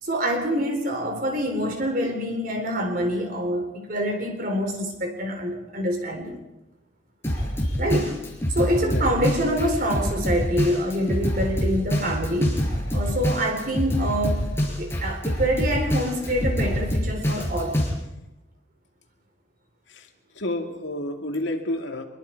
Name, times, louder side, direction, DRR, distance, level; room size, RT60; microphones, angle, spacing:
voice 1, 0.0-6.4 7.8-8.1 8.6-12.6 12.9-14.4 14.8-17.8, equal, 45° right, 3 dB, 4.0 m, -26 dB
Drum kit, 7.2-17.9, equal, 15° left, 4.7 m, -26 dB
voice 2, 8.8-9.1 19.9-20.1 20.3-22.1, left 1 dB, 70° left, 4 dB, 2.3 m, -30 dB
25.0 x 22.5 x 4.7 m, 0.96 s
head